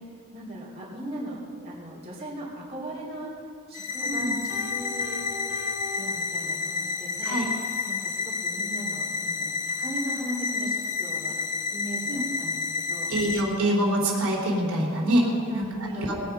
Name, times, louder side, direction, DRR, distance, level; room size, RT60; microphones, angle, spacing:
voice 1, 0.3-3.3 3.7-5.2 5.9-7.4 7.8-11.3 11.7-12.6 12.9-13.1 14.7-16.1, right 1 dB, 25° right, -5 dB, 3.4 m, -38 dB
sound 1, 3.7-13.4, left 4 dB, 35° left, 0.8 m, -30 dB
voice 2, 4.0-4.3 7.2-7.5 12.1-12.2 13.1-15.2 15.5-15.7 16.0-16.2, right 1 dB, 80° right, -2 dB, 3.3 m, -25 dB
Piano, 4.5-6.9, left 2 dB, 70° left, 3.8 m, -41 dB
20.0 x 9.2 x 5.5 m, 2.2 s
head